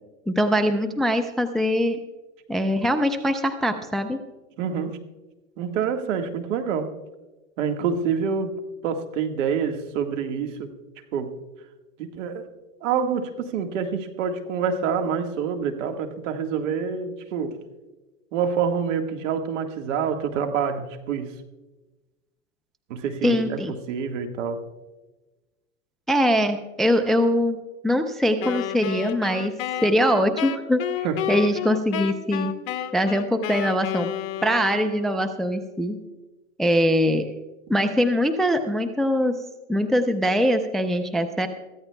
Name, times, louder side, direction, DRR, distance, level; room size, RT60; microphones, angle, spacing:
voice 1, 0.3-2.0 2.5-4.2 23.2-23.7 26.1-27.6 27.8-29.5 29.8-30.9 31.3-32.5 32.9-34.1 34.4-36.0 36.6-37.3 37.7-39.4 39.7-41.5, equal, ahead, 7 dB, 0.5 m, -22 dB
voice 2, 4.6-5.0 5.6-6.9 7.6-8.6 8.8-10.7 11.1-11.3 12.0-12.5 12.8-17.6 18.3-21.3 22.9-24.7 31.0-31.3, right 6 dB, 65° right, 5 dB, 1.7 m, -27 dB
Wind instrument woodwind instrument, 28.4-35.2, left 11 dB, 45° left, 1.1 m, -31 dB
22.5 x 14.5 x 2.3 m, 1.1 s
hypercardioid pair, 115°, 40 cm